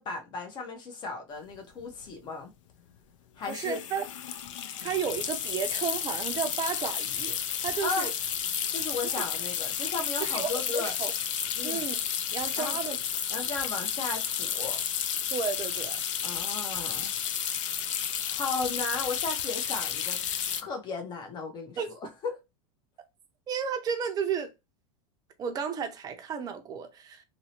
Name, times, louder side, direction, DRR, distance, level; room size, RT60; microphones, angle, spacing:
voice 1, 0.0-2.5 3.4-3.8 7.8-8.1 8.7-10.9 11.6-11.8 12.5-12.8 13.3-14.8 16.2-17.1 18.3-20.2 20.6-22.3, left 4 dB, 30° left, 0.7 m, -35 dB
sound 1, 1.5-1.6 1.8-2.1 3.4-20.6, left 8 dB, 90° left, 0.4 m, -32 dB
voice 2, 3.5-4.1 4.8-8.1 9.1-9.2 10.2-11.1 11.6-12.0 12.3-13.0 15.3-16.0 21.8-21.9 23.5-24.5 25.4-27.2, right 7 dB, 25° right, 0.5 m, -33 dB
2.6 x 2.1 x 2.8 m
supercardioid pair, 130°, 16 cm